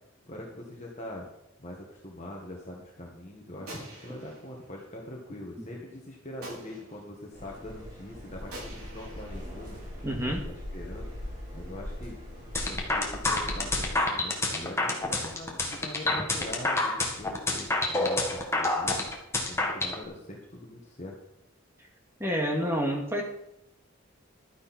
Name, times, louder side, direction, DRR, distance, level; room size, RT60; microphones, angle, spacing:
voice 1, 0.2-1.3 1.6-9.8 10.2-11.1 11.5-12.2 12.6-19.2 19.5-21.2, left 1 dB, 35° left, -2 dB, 1.8 m, -43 dB
Gunshot gunfire, 3.7-4.8 6.4-7.2 8.5-10.2, right 1 dB, 85° right, 6.0 m, -46 dB
sound 1, 7.3-14.0, equal, 40° right, 4.8 m, -40 dB
voice 2, 10.0-10.4 22.2-23.2, equal, 10° right, 0 dB, 2.1 m, -28 dB
sound 2, 12.5-19.9, left 2 dB, 15° left, 1.7 m, -28 dB
12.5 x 10.5 x 4.4 m, 0.81 s
head